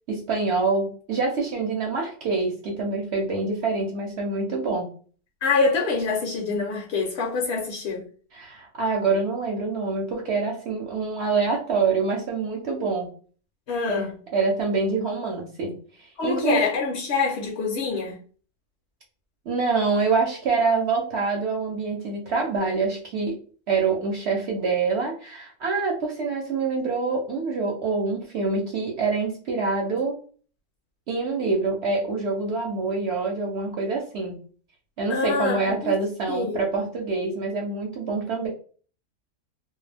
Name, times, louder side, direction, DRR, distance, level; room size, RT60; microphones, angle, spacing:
voice 1, 0.1-4.9 8.3-13.1 13.9-16.6 19.5-23.4 23.7-30.2 31.1-34.4 35.0-38.5, right 4 dB, 60° right, 0.8 m, -26 dB
voice 2, 5.4-8.0 13.7-14.1 16.2-18.2 35.1-35.9 36.3-36.6, left 4 dB, 65° left, 0.8 m, -25 dB
2.5 x 2.1 x 3.2 m
omnidirectional pair, 1.4 m